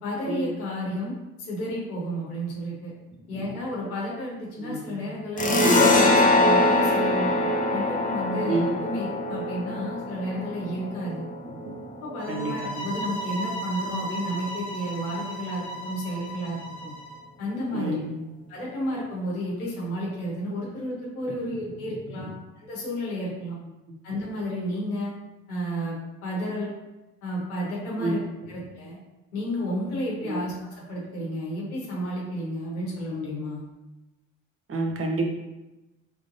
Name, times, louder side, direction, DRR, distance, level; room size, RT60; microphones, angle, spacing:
voice 1, 0.0-2.9 3.3-7.3 7.7-11.2 12.0-16.9 17.4-18.0 18.5-23.6 24.0-25.1 25.5-26.7 27.2-28.2 28.5-29.0 29.3-33.6, equal, 85° left, -5 dB, 1.1 m, -32 dB
voice 2, 4.6-5.1 8.5-8.8 12.3-12.9 17.7-18.2 28.0-28.2 30.2-30.4 34.7-35.3, right 2 dB, 30° right, 1 dB, 1.0 m, -29 dB
sound 1, 5.4-12.6, left 2 dB, 20° left, 0.7 m, -23 dB
sound 2, 12.2-17.2, right 1 dB, 65° left, 1.3 m, -35 dB
3.7 x 3.4 x 2.6 m, 1.0 s
hypercardioid pair, 55°, 42 cm